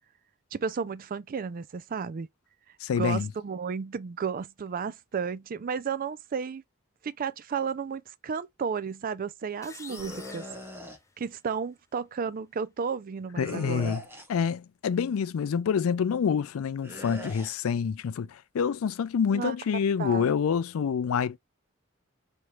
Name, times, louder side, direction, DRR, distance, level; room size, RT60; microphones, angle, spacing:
voice 1, 0.5-2.3 2.9-6.6 7.0-10.5 11.2-13.9 19.3-19.5 20.0-20.3, right 6 dB, 45° right, 0.4 m, -33 dB
voice 2, 2.8-3.3 13.4-14.0 14.3-21.4, left 7 dB, 75° left, 0.4 m, -27 dB
sound 1, 9.6-11.6, left 4 dB, 15° left, 0.5 m, -48 dB
sound 2, 9.9-11.0 13.4-14.4 16.8-17.5, left 1 dB, 10° right, 1.0 m, -41 dB
4.4 x 3.3 x 2.3 m
head